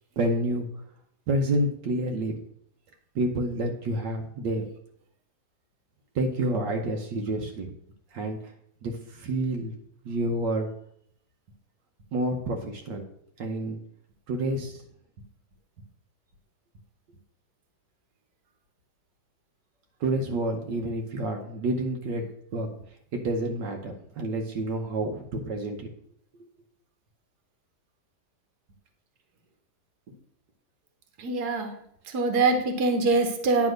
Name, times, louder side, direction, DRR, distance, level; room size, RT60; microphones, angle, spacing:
voice 1, 0.2-0.6 1.3-2.4 3.1-4.6 6.1-7.7 8.1-8.5 8.8-9.7 10.0-10.7 12.1-13.1 13.4-13.8 14.3-14.8 20.0-22.7 23.1-25.9, right 1 dB, 85° right, 2 dB, 1.5 m, -29 dB
voice 2, 31.2-31.7 32.1-33.7, right 3 dB, 70° right, 5 dB, 1.6 m, -24 dB
9.5 x 3.4 x 6.3 m, 0.67 s
omnidirectional pair, 1.8 m